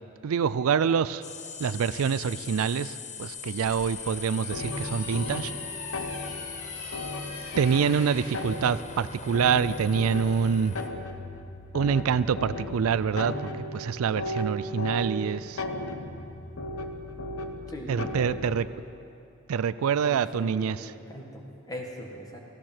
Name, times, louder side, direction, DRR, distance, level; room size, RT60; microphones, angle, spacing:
voice 1, 0.2-1.2 1.6-5.5 7.6-10.8 11.7-15.6 17.9-18.7 19.5-20.9, right 6 dB, 85° right, 16 dB, 0.4 m, -26 dB
sound 1, 1.2-10.9, left 6 dB, 35° left, 0.8 m, -41 dB
sound 2, 3.3-8.4, left 1 dB, 50° left, 3.0 m, -44 dB
sound 3, 4.5-18.6, left 1 dB, 80° left, 1.0 m, -36 dB
voice 2, 17.7-18.6 20.0-22.4, equal, 15° left, 0 dB, 1.7 m, -40 dB
18.0 x 15.0 x 4.5 m, 2.7 s
head